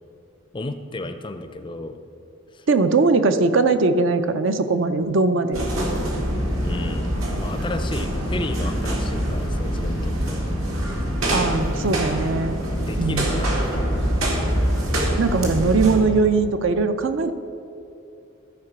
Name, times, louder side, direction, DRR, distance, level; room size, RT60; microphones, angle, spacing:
voice 1, 0.5-2.0 2.5-2.7 6.6-10.4 12.7-13.9, left 2 dB, 25° left, 9 dB, 0.4 m, -33 dB
voice 2, 2.7-5.6 11.3-12.6 13.0-13.4 15.2-17.3, right 3 dB, 65° right, 10 dB, 0.5 m, -20 dB
sound 1, 5.5-16.0, equal, 80° right, 2.0 m, -24 dB
13.0 x 4.8 x 5.9 m, 2.8 s
head